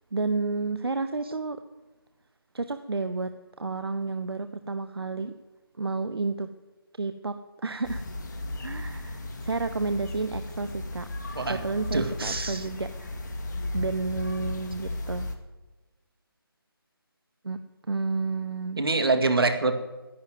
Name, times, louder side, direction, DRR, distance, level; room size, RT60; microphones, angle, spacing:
voice 1, 0.1-1.6 2.5-5.3 5.8-6.5 7.0-8.0 8.6-11.1 11.5-13.4 13.7-15.3 17.4-18.8, right 3 dB, 90° right, 9 dB, 1.0 m, -31 dB
sound 1, 7.8-15.4, left 2 dB, 50° left, 2.0 m, -35 dB
voice 2, 11.9-12.6 18.8-19.8, right 3 dB, 70° right, 7 dB, 2.2 m, -25 dB
11.5 x 10.5 x 9.3 m, 1.2 s
figure-of-eight pair, 165°, 13 cm